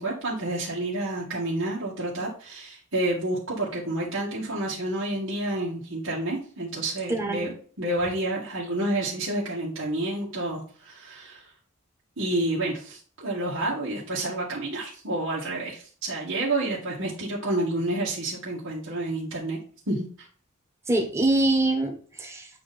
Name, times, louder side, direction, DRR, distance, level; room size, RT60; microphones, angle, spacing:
voice 1, 0.0-7.5 7.8-11.5 12.2-19.6 19.9-20.3, right 1 dB, 75° right, -6 dB, 2.1 m, -29 dB
voice 2, 7.1-7.5 20.9-22.5, right 2 dB, 15° right, 3 dB, 1.5 m, -24 dB
8.6 x 3.8 x 4.2 m, 0.43 s
head